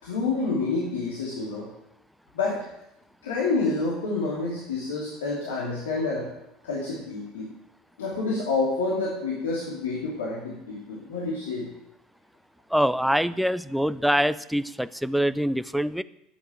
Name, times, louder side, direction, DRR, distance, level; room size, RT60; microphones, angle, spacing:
voice 1, 0.0-1.7 2.3-2.7 3.2-6.3 6.6-7.5 8.0-11.7, left 3 dB, 70° left, -4 dB, 2.6 m, -28 dB
voice 2, 12.7-16.0, equal, ahead, 16 dB, 0.5 m, -24 dB
10.0 x 8.2 x 9.2 m, 0.84 s
figure-of-eight pair, 70°, 0 cm